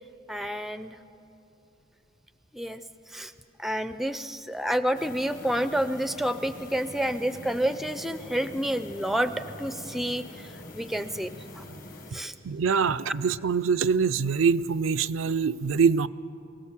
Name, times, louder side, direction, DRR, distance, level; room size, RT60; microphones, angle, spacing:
voice 1, 0.3-1.0 2.5-2.8 3.1-3.3 3.6-11.7 12.1-12.3, right 1 dB, ahead, 12 dB, 0.5 m, -29 dB
sound 1, 4.9-12.1, left 1 dB, 40° left, 1.4 m, -44 dB
voice 2, 12.4-16.1, right 5 dB, 80° right, 13 dB, 0.4 m, -24 dB
24.5 x 17.0 x 7.3 m, 2.9 s
head